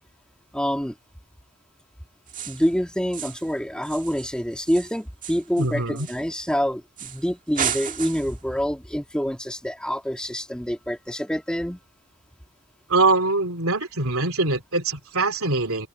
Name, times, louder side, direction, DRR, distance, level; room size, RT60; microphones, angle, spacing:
voice 1, 0.5-0.9 2.5-11.8, equal, 5° left, 3.0 m, -26 dB
sound 1, 2.3-2.7 3.1-3.5 3.8-6.5 7.0-7.2 7.5-8.4, right 8 dB, 35° right, 1.9 m, -33 dB
voice 2, 5.6-6.1 12.9-15.9, right 3 dB, 70° right, 3.1 m, -23 dB
open air
head